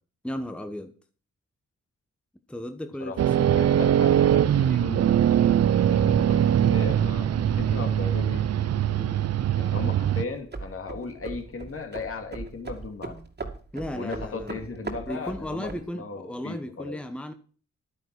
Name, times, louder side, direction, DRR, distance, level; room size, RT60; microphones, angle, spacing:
voice 1, 0.2-0.9 2.5-3.9 8.9-9.2 13.7-14.6 15.1-17.3, left 1 dB, 5° left, 1.1 m, -35 dB
voice 2, 3.0-5.1 5.8-8.4 9.6-13.2 13.9-17.0, left 4 dB, 50° left, 2.6 m, -37 dB
sound 1, 3.2-10.2, right 10 dB, 60° right, 0.5 m, -22 dB
sound 2, 10.3-15.9, right 3 dB, 35° right, 2.5 m, -39 dB
11.0 x 9.5 x 6.2 m
cardioid pair, 95°, 29 cm